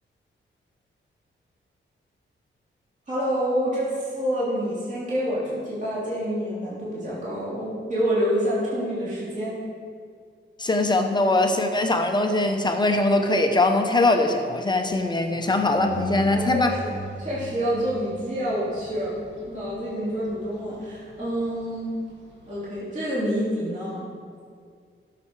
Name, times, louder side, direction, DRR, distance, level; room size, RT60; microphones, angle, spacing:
voice 1, 3.1-9.5 16.3-16.8 17.2-19.2 19.5-21.9 22.5-24.1, equal, 40° right, -9 dB, 3.3 m, -27 dB
voice 2, 10.6-16.7, left 2 dB, 20° left, 4 dB, 0.7 m, -21 dB
sound 1, 15.7-22.7, right 1 dB, 65° right, 2.0 m, -41 dB
15.5 x 6.9 x 4.7 m, 2.1 s
wide cardioid pair, 180°, 21 cm